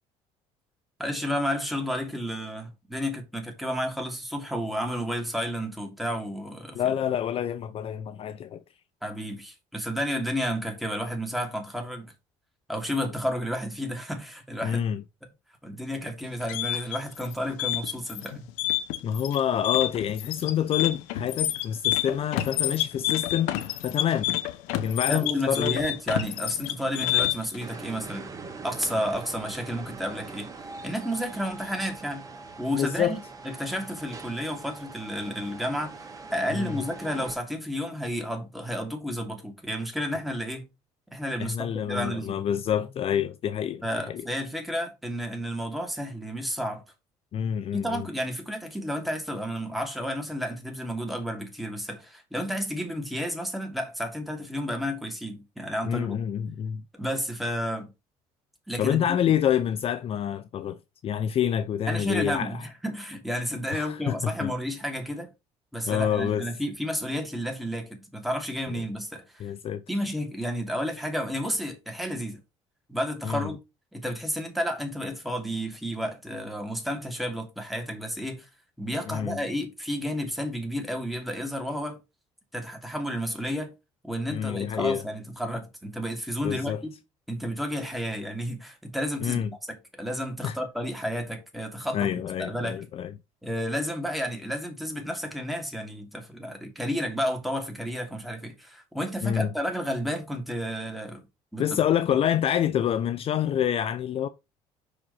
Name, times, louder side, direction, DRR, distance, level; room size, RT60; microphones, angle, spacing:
voice 1, 1.0-6.9 9.0-12.1 12.7-14.8 15.6-18.5 25.1-28.3 28.6-30.5 30.8-32.2 32.6-36.0 36.3-40.7 41.1-42.4 43.8-46.8 47.7-56.2 56.9-57.9 58.7-59.2 61.9-65.3 65.7-69.4 69.9-72.4 72.9-73.6 73.9-78.5 78.8-82.0 82.5-83.7 84.0-86.9 87.3-92.1 92.4-92.8 93.4-101.2 101.5-101.6, equal, ahead, 2.8 m, -31 dB
voice 2, 6.7-8.6 14.6-15.0 19.0-23.5 23.8-24.4 24.7-25.8 32.7-33.2 36.5-36.8 41.4-44.3 47.3-48.1 55.8-56.8 58.8-60.8 61.0-62.7 63.7-64.5 65.9-66.5 68.8-68.9 69.4-69.8 73.2-73.5 79.1-79.4 84.3-85.0 86.4-86.8 89.2-89.5 90.4-90.6 91.9-93.1 99.2-99.5 101.6-104.3, left 9 dB, 50° left, 0.6 m, -27 dB
sound 1, 16.2-27.6, left 14 dB, 85° left, 0.9 m, -28 dB
sound 2, 27.6-37.3, right 4 dB, 25° right, 1.8 m, -42 dB
5.9 x 5.1 x 5.5 m
cardioid pair, 95°, 13 cm